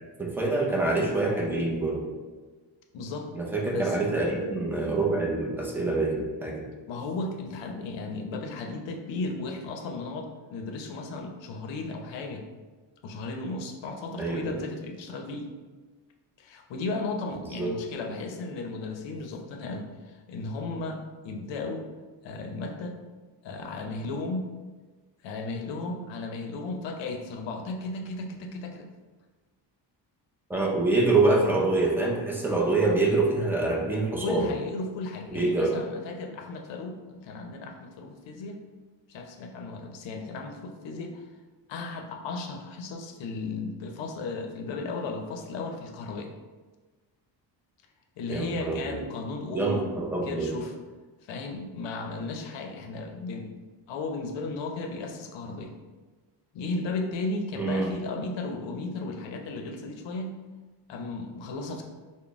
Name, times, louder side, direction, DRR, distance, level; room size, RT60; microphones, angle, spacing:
voice 1, 0.2-2.1 3.3-6.6 14.2-14.5 17.6-17.7 30.5-34.5 35.3-35.7 48.3-49.0 49.5-50.5 57.6-57.9, right 2 dB, 5° right, -2 dB, 0.4 m, -25 dB
voice 2, 2.9-3.3 3.6-4.0 6.9-12.5 13.0-15.5 16.4-21.9 22.2-23.0 23.4-24.5 25.2-28.9 34.2-38.6 39.1-41.3 41.7-46.3 48.2-49.8 50.2-50.7 51.2-53.5 53.9-55.7 56.5-60.4 60.9-61.8, left 3 dB, 75° left, 4 dB, 0.6 m, -35 dB
3.8 x 2.1 x 3.4 m, 1.3 s
cardioid pair, 130°, 45 cm